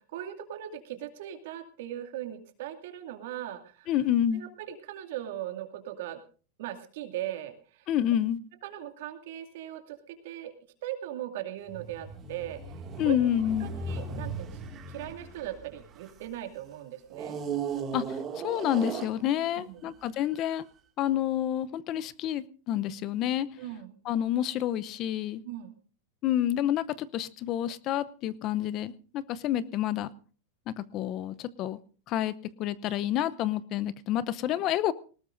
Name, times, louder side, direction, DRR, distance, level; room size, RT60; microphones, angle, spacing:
voice 1, 0.0-3.9 4.3-6.2 6.6-7.9 8.6-10.5 10.8-12.6 13.0-14.6 14.9-17.4 19.6-19.9 23.6-24.0 25.4-25.8, right 12 dB, 70° right, 4 dB, 2.4 m, -39 dB
voice 2, 3.9-4.4 7.9-8.4 13.0-13.7 17.9-18.2 18.4-20.7 21.0-23.5 24.0-25.4 26.2-30.1 30.7-31.8 32.1-32.3 32.6-34.9, left 11 dB, 40° left, 17 dB, 0.7 m, -28 dB
sound 1, 11.7-16.4 17.1-19.7 20.3-20.5, right 5 dB, 30° right, 2.2 m, -37 dB
20.5 x 18.5 x 2.6 m, 0.38 s
hypercardioid pair, 120°, 0 cm